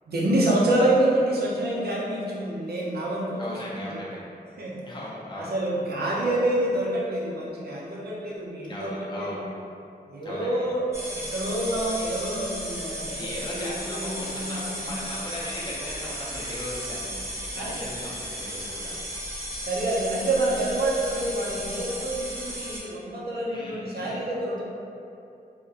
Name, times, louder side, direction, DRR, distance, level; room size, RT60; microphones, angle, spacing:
voice 1, 0.1-4.0 4.6-4.8 5.4-9.4 10.1-15.0 17.6-17.8 19.6-24.6, right 1 dB, 70° right, -6 dB, 0.5 m, -27 dB
voice 2, 3.4-4.2 4.8-5.6 6.0-6.3 8.6-9.5 10.2-10.7 13.0-19.0 23.5-24.2, left 1 dB, 30° left, -6 dB, 0.5 m, -38 dB
sound 1, 10.9-22.8, equal, 15° right, 0.5 m, -35 dB
2.7 x 2.1 x 2.3 m, 2.6 s
wide cardioid pair, 125°, 17 cm